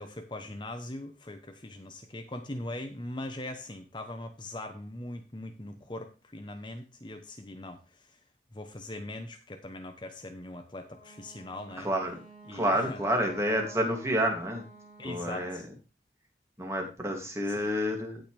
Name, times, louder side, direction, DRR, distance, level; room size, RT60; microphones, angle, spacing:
voice 1, 0.0-8.2 8.5-11.9 12.5-13.0 15.0-15.7 17.6-17.7, left 1 dB, 25° left, 6 dB, 1.0 m, -41 dB
Wind instrument woodwind instrument, 10.8-15.7, right 2 dB, 35° right, 3.6 m, -51 dB
voice 2, 11.8-12.2 12.5-14.6 15.0-15.6 16.6-18.2, equal, 15° right, 2 dB, 2.7 m, -29 dB
17.0 x 5.7 x 3.4 m, 0.32 s
head